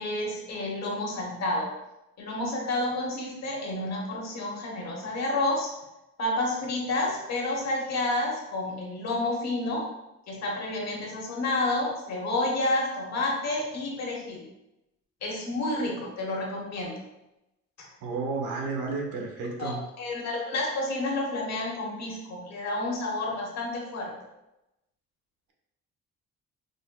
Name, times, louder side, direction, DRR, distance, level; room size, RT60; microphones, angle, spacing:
voice 1, 0.0-1.7 2.2-5.7 6.2-9.8 10.3-14.4 15.2-17.0 17.8-17.9 19.6-24.1, left 2 dB, 60° left, -1 dB, 1.0 m, -30 dB
voice 2, 18.0-19.8, right 4 dB, 90° right, -1 dB, 0.9 m, -32 dB
5.1 x 2.1 x 2.2 m, 0.93 s
cardioid pair, 90°, 30 cm